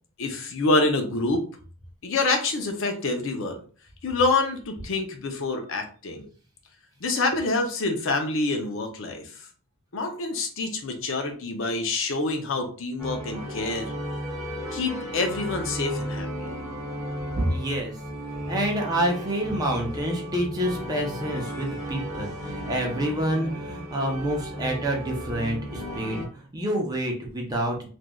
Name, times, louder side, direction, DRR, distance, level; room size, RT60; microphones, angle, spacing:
voice 1, 0.2-1.4 2.0-3.6 4.0-6.3 7.0-9.3 9.9-13.9 14.7-16.5, left 3 dB, 60° left, 4 dB, 0.6 m, -26 dB
sound 1, 13.0-26.3, equal, 5° left, 1.0 m, -34 dB
voice 2, 17.3-17.9 18.5-27.9, right 1 dB, 15° right, -1 dB, 0.6 m, -28 dB
3.1 x 2.5 x 2.3 m, 0.40 s
head